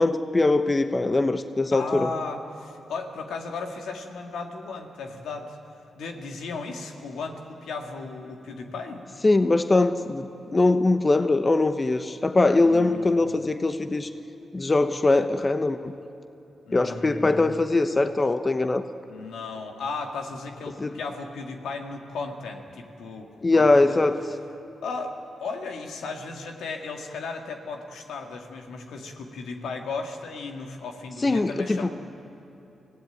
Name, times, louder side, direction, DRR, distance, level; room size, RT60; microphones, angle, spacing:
voice 1, 0.0-2.1 9.2-14.1 14.5-15.9 16.7-18.8 20.8-20.9 23.4-24.2 31.2-31.9, left 2 dB, 35° left, 9 dB, 1.0 m, -22 dB
voice 2, 1.7-5.6 5.9-9.0 12.6-13.1 16.7-17.6 19.1-24.0 24.8-31.9, left 4 dB, 85° left, 3 dB, 2.2 m, -35 dB
24.0 x 16.5 x 9.4 m, 2.9 s
supercardioid pair, 55°, 0 cm